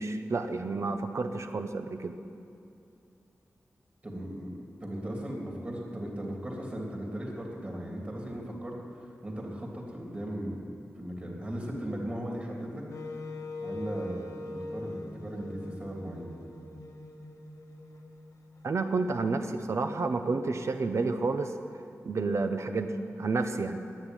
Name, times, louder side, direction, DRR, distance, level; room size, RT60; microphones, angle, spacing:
voice 1, 0.0-2.1 18.6-21.5 22.0-23.8, right 3 dB, 60° right, 7 dB, 0.9 m, -30 dB
voice 2, 4.0-8.7 9.2-12.8 13.6-16.3, right 1 dB, 25° right, -2 dB, 3.0 m, -37 dB
Wind instrument woodwind instrument, 12.9-18.9, left 2 dB, 80° left, 1.4 m, -42 dB
10.5 x 9.7 x 9.3 m, 2.7 s
wide cardioid pair, 130°, 6 cm